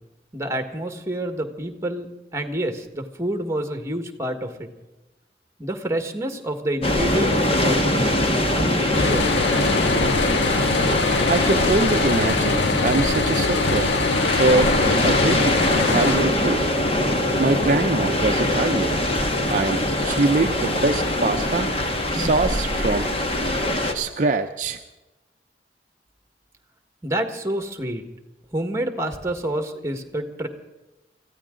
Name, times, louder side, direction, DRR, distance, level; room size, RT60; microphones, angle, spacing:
voice 1, 0.3-4.7 5.6-8.1 8.5-9.4 27.0-28.0 28.5-30.5, right 1 dB, 15° right, 6 dB, 1.6 m, -28 dB
sound 1, 6.8-23.9, left 1 dB, 35° left, 1.8 m, -22 dB
sound 2, 8.9-16.2, left 4 dB, 85° left, 0.8 m, -24 dB
voice 2, 11.3-13.9 14.2-14.8 15.0-15.5 15.9-16.6 17.4-19.0 19.5-21.7 22.1-23.1 23.9-24.8, right 3 dB, 45° right, 5 dB, 0.6 m, -23 dB
23.5 x 15.0 x 3.8 m, 1.0 s
head